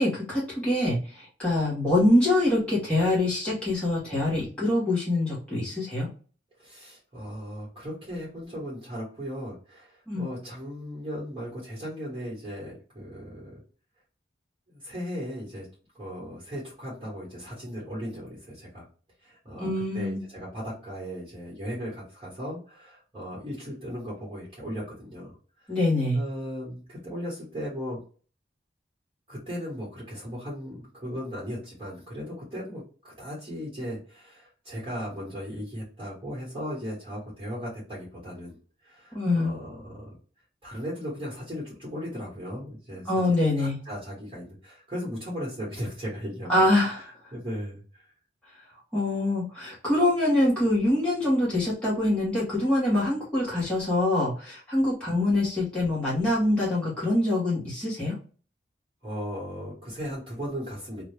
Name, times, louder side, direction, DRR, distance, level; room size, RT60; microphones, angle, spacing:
voice 1, 0.0-6.1 10.1-10.3 19.6-20.2 25.7-26.2 39.1-39.5 43.1-43.8 46.5-47.0 48.9-58.1, left 1 dB, 5° left, -7 dB, 1.1 m, -24 dB
voice 2, 6.6-13.6 14.7-15.7 15.9-18.8 19.2-25.3 25.6-25.7 26.1-28.0 29.3-38.6 38.8-40.1 40.6-46.9 47.3-48.1 59.0-61.1, equal, 30° right, -6 dB, 1.3 m, -37 dB
2.8 x 2.5 x 3.3 m, 0.38 s
head